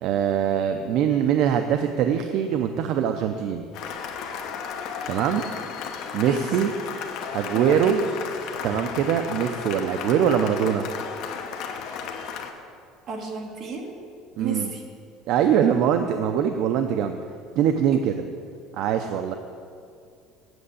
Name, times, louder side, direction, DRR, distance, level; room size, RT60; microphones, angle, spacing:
voice 1, 0.0-3.7 5.1-5.4 6.1-6.7 7.3-8.0 8.6-10.9 14.4-14.7 15.3-17.2 17.6-18.1 18.7-19.4, right 8 dB, 50° right, 6 dB, 0.5 m, -22 dB
Cheering / Applause, 3.7-12.5, left 6 dB, 55° left, 0.9 m, -34 dB
voice 2, 7.5-7.9 13.1-14.0 14.4-14.8, right 4 dB, 35° right, 1 dB, 1.5 m, -32 dB
7.9 x 7.6 x 8.3 m, 2.3 s
cardioid pair, 170°, 0 cm